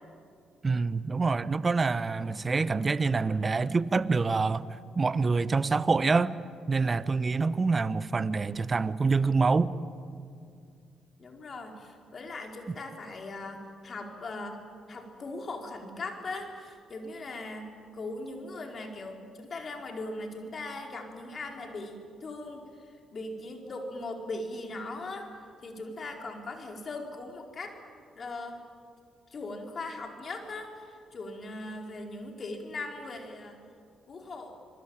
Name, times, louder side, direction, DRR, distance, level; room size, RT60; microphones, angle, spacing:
voice 1, 0.6-6.3 6.7-9.7, right 4 dB, 35° right, 16 dB, 1.0 m, -26 dB
voice 2, 11.2-14.6 14.9-25.3 25.6-27.8 28.1-28.6 29.3-33.6 34.1-34.6, left 2 dB, 45° left, 2 dB, 4.7 m, -39 dB
26.5 x 21.5 x 8.9 m, 2.3 s
supercardioid pair, 60°, 0 cm